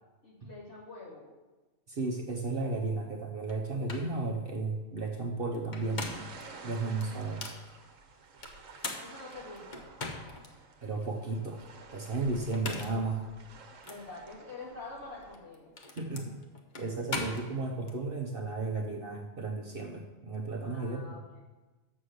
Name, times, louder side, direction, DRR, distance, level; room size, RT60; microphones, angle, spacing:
voice 1, 0.2-1.3 9.0-9.9 13.8-15.7 20.6-21.4, left 3 dB, 55° left, -7 dB, 3.2 m, -46 dB
voice 2, 1.9-6.1 6.6-7.4 10.8-11.6 11.9-13.3 16.0-16.4 16.8-21.4, right 3 dB, 50° right, 2 dB, 1.0 m, -34 dB
sound 1, 3.5-3.6 3.9-4.1 5.5-6.4 7.0-7.6 8.4-10.5 11.0-11.1 12.4-13.1 13.8-14.0 15.2-18.0, left 3 dB, 40° left, 1.0 m, -40 dB
sound 2, 5.8-15.4, right 4 dB, 75° right, 1.3 m, -52 dB
7.3 x 6.4 x 6.6 m, 1.2 s
omnidirectional pair, 1.4 m